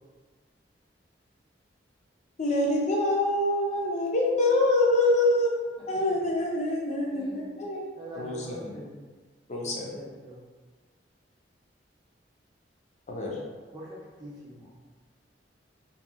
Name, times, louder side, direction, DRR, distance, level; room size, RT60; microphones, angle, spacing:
voice 1, 2.4-5.5 5.9-7.8 8.2-8.7 9.5-10.0 13.1-13.4, left 2 dB, 40° left, -2 dB, 0.5 m, -25 dB
voice 2, 7.1-7.6 8.0-9.0 9.6-10.4 13.3-13.4 13.7-14.7, right 1 dB, 25° right, -7 dB, 0.6 m, -44 dB
2.7 x 2.3 x 2.3 m, 1.4 s
head